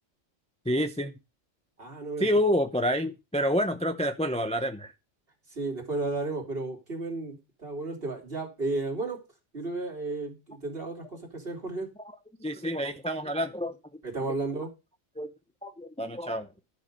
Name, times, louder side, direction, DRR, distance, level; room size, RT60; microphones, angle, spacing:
voice 1, 0.7-1.1 2.2-4.9 12.4-13.8 15.2-15.3 15.6-16.5, equal, 10° left, 0.3 m, -28 dB
voice 2, 1.8-2.3 5.5-9.2 9.5-11.9 14.0-14.7, right 3 dB, 45° right, 3.2 m, -33 dB
12.0 x 6.4 x 5.3 m
omnidirectional pair, 1.4 m